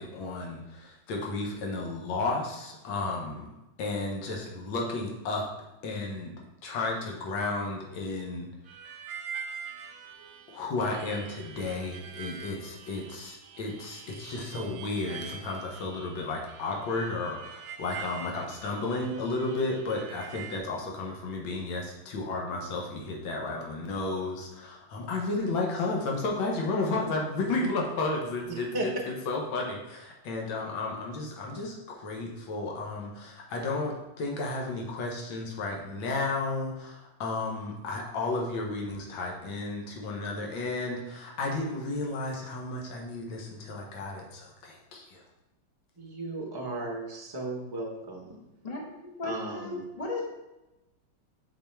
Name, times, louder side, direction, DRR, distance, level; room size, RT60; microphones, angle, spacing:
voice 1, 0.0-3.5 3.8-5.5 5.8-6.3 6.6-8.5 10.5-28.7 29.3-45.2, left 3 dB, 75° left, 0 dB, 1.7 m, -33 dB
Harmonica, 8.7-20.6, right 7 dB, 65° right, 1.1 m, -44 dB
voice 2, 46.0-48.7 49.2-49.8, right 2 dB, 35° right, -2 dB, 0.3 m, -36 dB
voice 3, 48.6-50.2, left 2 dB, 35° left, -1 dB, 0.6 m, -36 dB
5.5 x 4.6 x 4.4 m, 0.98 s
omnidirectional pair, 2.2 m